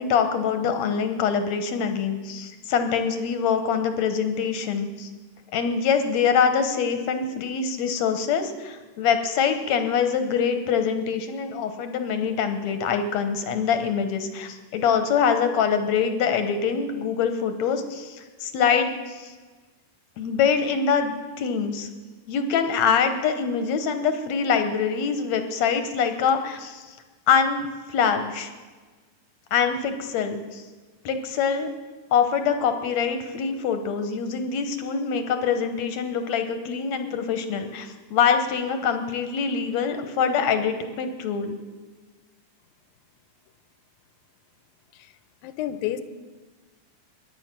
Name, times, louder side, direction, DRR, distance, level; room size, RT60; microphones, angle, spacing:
voice 1, 0.0-5.1 5.5-19.3 20.2-21.9 22.3-27.0 27.3-27.6 27.9-28.5 29.5-30.6 31.1-31.7 32.1-41.6, left 6 dB, 70° left, 8 dB, 1.8 m, -24 dB
voice 2, 45.4-46.0, left 12 dB, 85° left, 12 dB, 2.5 m, -30 dB
23.0 x 10.0 x 6.0 m, 1.4 s
omnidirectional pair, 4.0 m